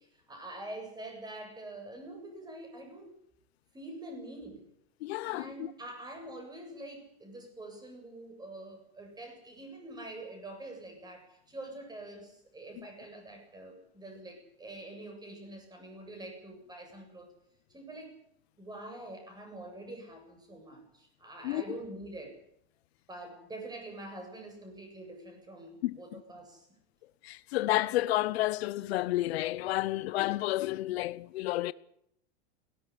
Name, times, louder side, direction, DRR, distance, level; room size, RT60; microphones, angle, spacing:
voice 1, 0.0-3.1 3.7-4.7 5.2-17.3 17.7-18.1 18.6-22.4 23.1-26.7, right 2 dB, 10° right, 7.8 m, -45 dB
voice 2, 5.0-5.7 21.4-21.6 25.8-26.2 27.2-31.7, left 16 dB, 70° left, 0.8 m, -31 dB
18.0 x 17.5 x 9.9 m
supercardioid pair, 130°, 33 cm